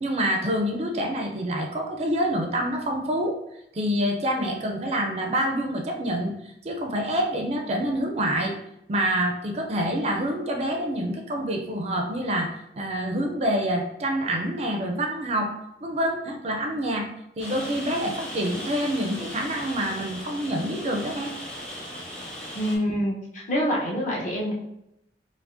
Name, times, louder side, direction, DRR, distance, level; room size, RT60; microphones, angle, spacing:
voice 1, 0.0-3.4 3.7-6.3 6.6-8.5 8.9-17.1 17.4-21.3, equal, 35° right, 2 dB, 0.4 m, -27 dB
Rain, 17.4-22.8, equal, 5° left, 0.6 m, -37 dB
voice 2, 22.5-24.5, equal, 45° left, -4 dB, 0.9 m, -26 dB
4.7 x 2.0 x 2.6 m, 0.82 s
head